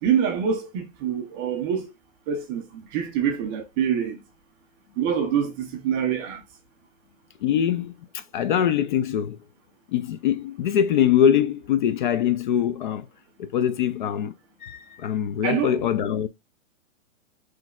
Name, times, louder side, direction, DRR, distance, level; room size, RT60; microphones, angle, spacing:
voice 1, 0.0-1.9 2.3-4.2 5.0-6.4 15.4-15.7, right 8 dB, 20° right, 0.4 m, -25 dB
voice 2, 7.4-9.4 9.9-13.1 13.4-14.3 14.6-16.3, left 9 dB, 40° left, 0.4 m, -23 dB
5.9 x 3.2 x 2.2 m
hypercardioid pair, 145°, 38 cm